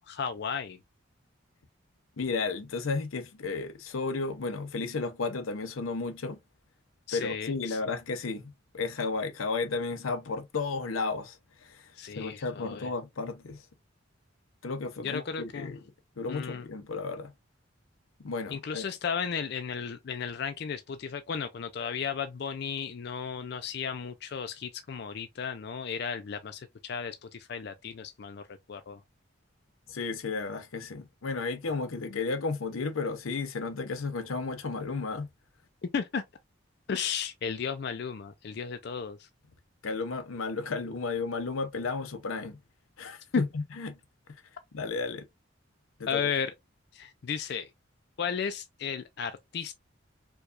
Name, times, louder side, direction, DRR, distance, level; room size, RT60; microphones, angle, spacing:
voice 1, 0.1-0.8 7.1-7.8 12.0-12.9 15.0-15.8 16.3-16.7 18.5-28.4 28.7-29.0 35.8-36.2 36.9-39.3 43.3-43.4 46.1-46.5 46.9-47.7 48.2-49.7, left 6 dB, 55° left, 0.4 m, -34 dB
voice 2, 2.2-6.4 7.1-11.4 11.6-11.8 12.2-13.6 14.6-15.8 16.2-17.3 18.2-18.8 29.9-35.3 39.8-42.6 43.0-44.0 44.7-45.3 46.0-46.3, left 4 dB, 90° left, 0.7 m, -33 dB
4.6 x 2.3 x 2.5 m
head